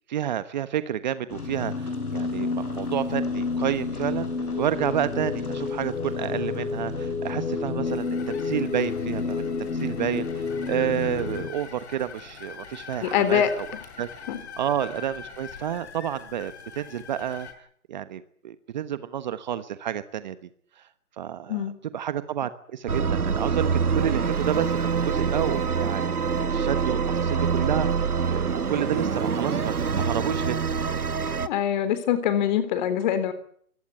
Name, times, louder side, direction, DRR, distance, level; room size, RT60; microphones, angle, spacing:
voice 1, 0.1-4.3 4.6-13.7 14.0-14.1 14.6-17.5 17.9-20.4 20.8-20.9 21.2-21.6 21.9-26.2 26.4-30.6, right 10 dB, 30° right, 13 dB, 1.2 m, -30 dB
sound 1, 1.3-11.5, left 4 dB, 80° left, 7.5 m, -29 dB
sound 2, 7.8-17.5, left 6 dB, 50° left, 5.7 m, -43 dB
voice 2, 13.0-13.5 14.3-14.4 21.5-21.8 31.5-33.3, left 10 dB, 30° left, 13 dB, 3.7 m, -24 dB
sound 3, 22.9-31.5, right 6 dB, 85° right, 1.7 m, -25 dB
24.5 x 17.0 x 9.8 m, 0.62 s
hypercardioid pair, 150°, 44 cm